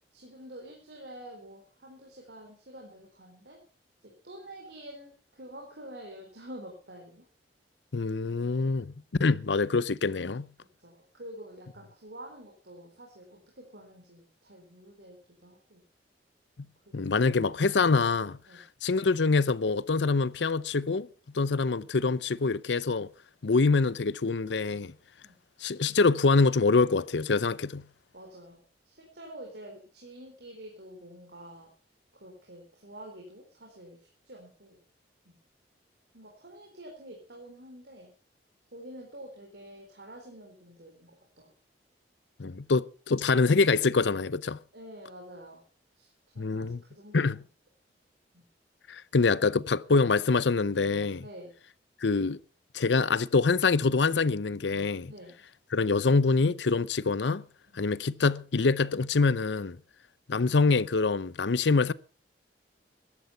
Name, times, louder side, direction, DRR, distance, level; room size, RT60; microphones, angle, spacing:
voice 1, 0.1-3.6 4.0-7.3 8.5-8.8 10.6-15.8 16.8-17.2 18.5-18.6 25.2-25.4 28.1-31.7 32.1-34.8 35.2-35.4 36.1-38.1 38.7-41.5 44.7-45.6 46.0-47.3 48.3-48.5 51.2-51.5 55.1-55.3 57.7-57.8, right 1 dB, 65° right, 4.0 m, -48 dB
voice 2, 7.9-8.9 9.2-10.5 16.9-18.4 18.8-21.1 21.3-23.1 23.4-24.9 25.6-27.8 42.4-44.6 46.4-46.8 47.1-47.4 48.9-51.2 52.0-52.4 52.7-55.1 55.7-57.4 57.7-59.8 60.3-61.9, left 4 dB, 75° left, 0.7 m, -25 dB
15.0 x 12.0 x 5.6 m
head